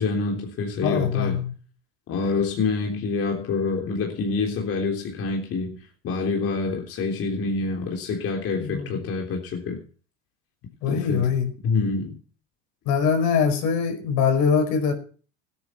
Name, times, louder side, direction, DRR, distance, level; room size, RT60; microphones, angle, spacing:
voice 1, 0.0-1.4 2.1-9.8 10.9-11.3 11.6-12.1, left 4 dB, 40° left, 3.6 m, -27 dB
voice 2, 0.8-1.5 8.6-8.9 10.8-11.5 12.8-14.9, left 6 dB, 60° left, 5.1 m, -22 dB
16.5 x 9.6 x 5.8 m
supercardioid pair, 115°, 33 cm